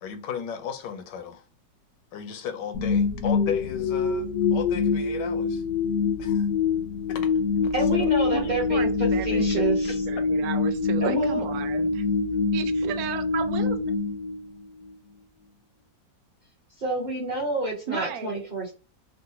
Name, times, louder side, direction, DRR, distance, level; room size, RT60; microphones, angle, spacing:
voice 1, 0.0-1.4 2.1-5.6 6.2-6.5 7.1-8.1 8.4-8.5, left 7 dB, 85° left, 1.3 m, -36 dB
sound 1, 2.7-14.9, left 4 dB, 65° left, 0.8 m, -25 dB
voice 2, 7.7-10.0 11.0-11.4 16.8-18.7, right 1 dB, 35° right, 0.7 m, -28 dB
voice 3, 8.3-12.0 12.5-13.8 17.9-18.5, right 8 dB, 70° right, 0.9 m, -34 dB
3.7 x 2.1 x 2.8 m
omnidirectional pair, 1.9 m